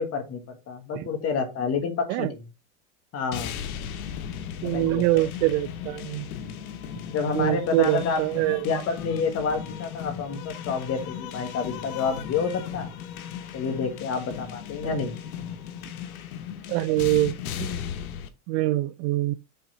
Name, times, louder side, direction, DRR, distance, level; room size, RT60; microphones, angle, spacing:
voice 1, 0.0-2.4 3.1-3.5 4.6-5.0 7.1-8.2 8.6-12.9 13.5-15.2, left 5 dB, 35° left, 1.7 m, -29 dB
sound 1, 3.3-18.3, left 8 dB, 85° left, 1.1 m, -36 dB
voice 2, 4.6-6.3 7.3-8.6 14.8-15.0 16.7-17.3 17.6-17.7 18.5-19.3, right 17 dB, 50° right, 0.5 m, -24 dB
5.8 x 3.6 x 5.5 m
supercardioid pair, 135°, 42 cm